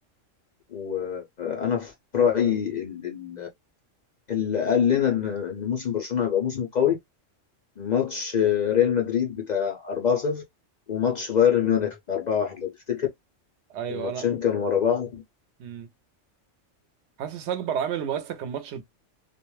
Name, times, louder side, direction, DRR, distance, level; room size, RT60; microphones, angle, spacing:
voice 1, 0.7-3.5 4.3-7.0 7.8-10.4 10.9-13.1 13.9-15.2, left 8 dB, 65° left, 0.4 m, -25 dB
voice 2, 13.7-14.3 15.6-15.9 17.2-18.8, right 8 dB, 65° right, 0.9 m, -31 dB
2.4 x 2.1 x 3.0 m
omnidirectional pair, 1.3 m